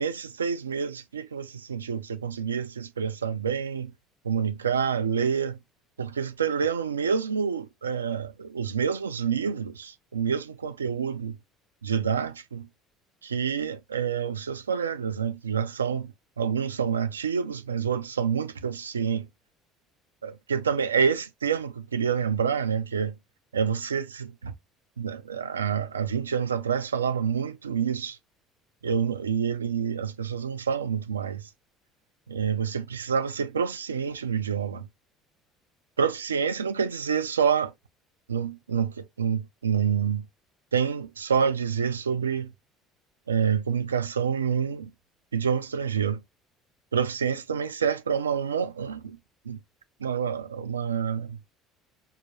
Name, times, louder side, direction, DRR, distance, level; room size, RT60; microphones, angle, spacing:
voice 1, 0.0-3.9 4.2-5.6 6.0-11.4 11.8-12.7 13.2-16.1 16.4-19.3 20.2-23.1 23.5-24.5 25.0-28.2 28.8-31.4 32.3-34.9 36.0-37.7 38.3-40.2 40.7-42.5 43.3-44.9 45.3-46.2 46.9-49.2 49.5-49.6 50.0-51.4, right 7 dB, 90° right, 0.3 m, -27 dB
5.4 x 2.2 x 2.9 m
hypercardioid pair, 60°, 0 cm